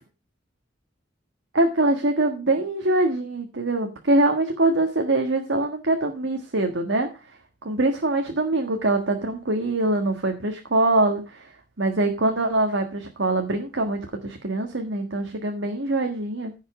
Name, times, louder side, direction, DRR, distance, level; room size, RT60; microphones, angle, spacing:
voice 1, 1.5-7.1 7.6-11.5 11.8-16.5, right 2 dB, 80° right, 4 dB, 1.6 m, -23 dB
15.0 x 5.6 x 4.9 m, 0.29 s
head